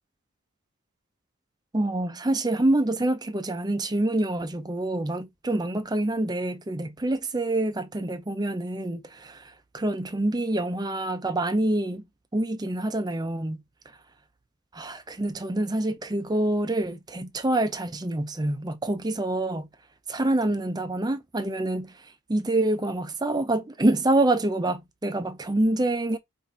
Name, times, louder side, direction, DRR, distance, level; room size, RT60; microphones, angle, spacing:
voice 1, 1.7-12.0 12.3-13.6 14.7-19.7 20.1-26.2, right 1 dB, 20° right, 0.5 m, -26 dB
4.0 x 2.6 x 4.4 m
head